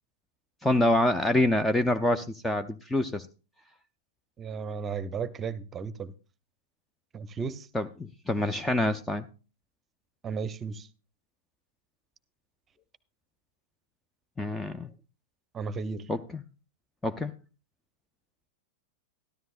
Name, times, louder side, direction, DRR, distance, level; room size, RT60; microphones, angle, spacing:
voice 1, 0.6-3.3 7.7-9.3 14.4-14.9 16.1-16.4 17.0-17.3, left 1 dB, 5° left, 0.5 m, -26 dB
voice 2, 4.4-6.1 7.1-7.7 10.2-10.9 15.5-16.0, right 5 dB, 20° right, 0.8 m, -34 dB
13.5 x 12.5 x 2.5 m
figure-of-eight pair, 95°, 0 cm